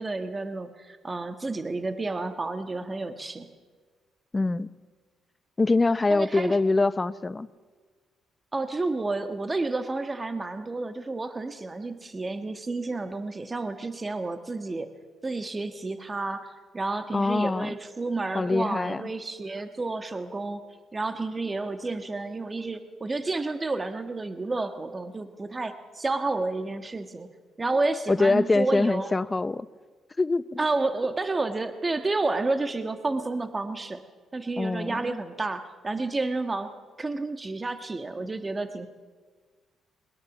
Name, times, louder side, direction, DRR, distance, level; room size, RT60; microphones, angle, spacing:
voice 1, 0.0-3.5 6.1-6.6 8.5-14.9 15.2-20.6 20.9-27.3 27.6-29.2 30.6-34.0 34.3-36.7 37.0-38.9, right 3 dB, 25° right, 8 dB, 1.5 m, -30 dB
voice 2, 4.3-4.7 5.6-7.5 17.1-17.7 18.3-19.0 28.1-29.7 30.2-30.6 34.6-35.2, left 3 dB, 20° left, 16 dB, 0.7 m, -24 dB
21.5 x 21.0 x 7.3 m, 1.5 s
cardioid pair, 90°, 0 cm